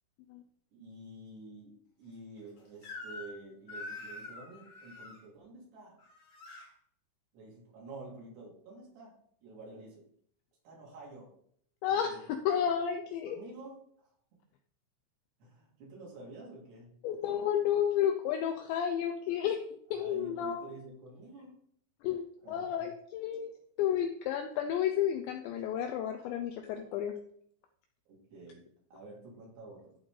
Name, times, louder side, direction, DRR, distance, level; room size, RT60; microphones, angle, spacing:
voice 1, 0.7-6.0 7.3-9.1 9.4-10.0 10.6-11.3 11.9-12.2 13.2-14.1 15.4-16.9 20.0-21.5 22.4-22.9 26.2-26.3 28.1-28.6 28.9-30.0, right 2 dB, 55° right, -4 dB, 4.8 m, -49 dB
Crying sobbing / Screech, 2.8-3.4 3.7-5.2 6.0-6.7, left 3 dB, 55° left, 1.9 m, -45 dB
voice 2, 11.8-13.4 17.0-20.7 22.0-23.5 23.8-27.2, left 9 dB, 85° left, 5 dB, 2.6 m, -32 dB
14.5 x 4.9 x 4.0 m, 0.64 s
omnidirectional pair, 5.9 m